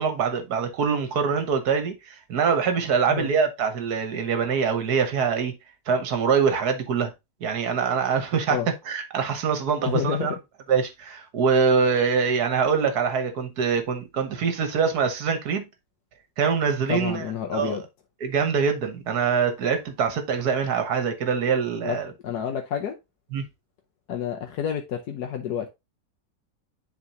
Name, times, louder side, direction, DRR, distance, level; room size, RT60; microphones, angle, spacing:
voice 1, 0.0-5.6 5.9-7.1 7.4-8.6 8.9-10.3 10.7-15.6 16.4-17.2 17.5-17.8 18.2-22.1 23.3-23.4, right 6 dB, 65° right, 1.6 m, -24 dB
voice 2, 9.9-10.4 16.9-17.8 21.8-22.0 22.2-23.0 24.1-25.7, left 9 dB, 70° left, 1.4 m, -29 dB
9.6 x 3.9 x 2.9 m
omnidirectional pair, 1.8 m